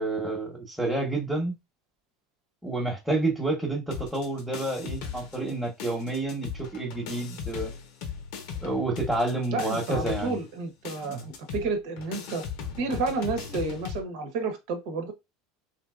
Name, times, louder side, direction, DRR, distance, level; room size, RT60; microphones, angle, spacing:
voice 1, 0.0-1.5 2.6-7.7 8.6-10.4 11.0-11.3, right 2 dB, ahead, 1.0 m, -29 dB
sound 1, 3.9-5.5 5.8-14.0, left 7 dB, 70° left, 0.7 m, -38 dB
voice 2, 9.5-12.4 12.8-15.1, right 3 dB, 70° right, 1.0 m, -31 dB
3.3 x 2.7 x 2.4 m
supercardioid pair, 105°, 0 cm